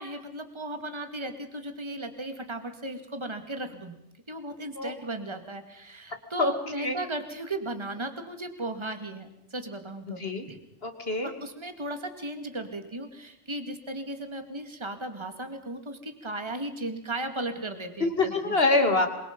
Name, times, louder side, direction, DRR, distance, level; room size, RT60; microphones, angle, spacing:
voice 1, 0.0-3.9 4.3-10.2 10.5-10.6 11.2-18.6, right 2 dB, 25° right, 7 dB, 2.2 m, -36 dB
voice 2, 10.8-11.3 18.0-19.1, left 3 dB, 55° left, 6 dB, 2.9 m, -25 dB
27.5 x 24.0 x 5.4 m, 0.84 s
omnidirectional pair, 1.2 m